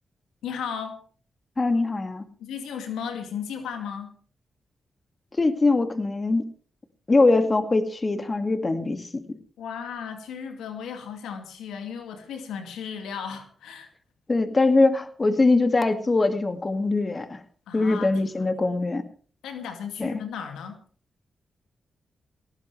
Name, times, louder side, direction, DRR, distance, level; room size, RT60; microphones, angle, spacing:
voice 1, 0.4-1.0 2.4-4.1 9.6-13.9 17.7-18.5 19.4-20.8, left 7 dB, 90° left, 5 dB, 2.3 m, -35 dB
voice 2, 1.6-2.3 5.4-6.4 7.1-9.2 14.3-17.4 17.7-19.0 20.0-20.1, left 3 dB, 35° left, 8 dB, 2.2 m, -22 dB
18.5 x 17.0 x 3.3 m, 0.43 s
supercardioid pair, 45°, 0 cm